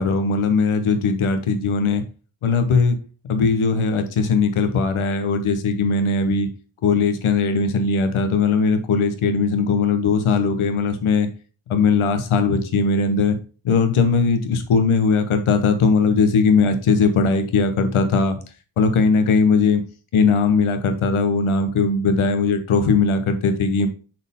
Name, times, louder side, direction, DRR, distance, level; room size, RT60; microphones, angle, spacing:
voice 1, 0.0-2.0 2.4-3.0 3.2-6.5 6.8-11.3 11.7-13.4 13.6-18.4 18.8-19.8 20.1-23.9, left 4 dB, 85° left, 8 dB, 1.2 m, -19 dB
6.2 x 4.4 x 3.6 m, 0.35 s
wide cardioid pair, 115°, 48 cm